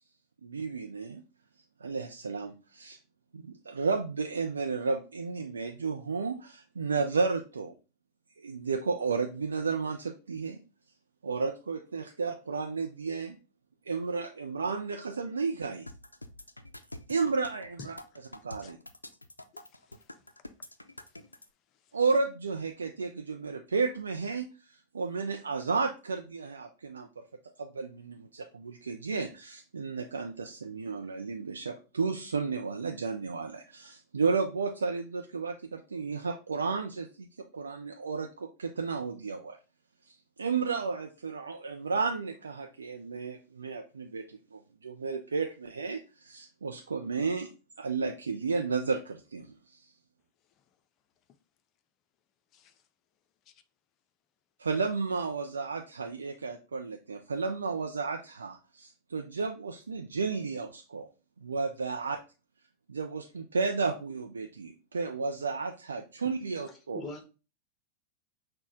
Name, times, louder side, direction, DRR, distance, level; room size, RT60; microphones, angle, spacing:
voice 1, 0.4-1.2 1.8-3.0 3.3-7.7 8.4-10.6 11.2-13.4 13.9-15.9 17.1-17.9 18.4-18.8 21.9-24.5 24.9-27.2 27.6-37.3 37.5-39.6 40.0-47.5 47.8-49.9 54.6-61.1 61.4-62.2 62.9-67.0, right 4 dB, 75° right, 0.4 m, -32 dB
sound 1, 15.9-21.5, left 1 dB, 85° left, 0.4 m, -47 dB
voice 2, 17.8-18.2 18.6-18.7 19.5-20.3 21.0-21.4 21.7-22.0 50.6-50.7 52.5-52.8 53.5-53.6, left 5 dB, 35° left, 0.6 m, -54 dB
voice 3, 66.7-67.3, left 2 dB, 15° left, 1.3 m, -41 dB
6.0 x 2.2 x 3.8 m
figure-of-eight pair, 90°, 0 cm